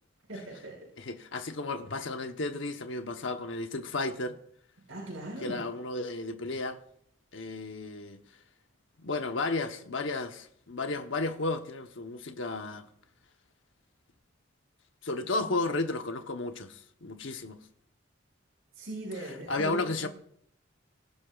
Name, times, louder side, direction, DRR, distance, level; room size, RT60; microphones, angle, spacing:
voice 1, 0.3-0.8 4.9-5.6 18.7-20.1, right 1 dB, 80° right, 5.9 m, -39 dB
voice 2, 1.0-4.4 5.4-6.8 7.3-8.2 9.0-12.9 15.0-17.6 19.2-20.1, left 3 dB, 70° left, 1.0 m, -33 dB
24.5 x 12.0 x 2.4 m
head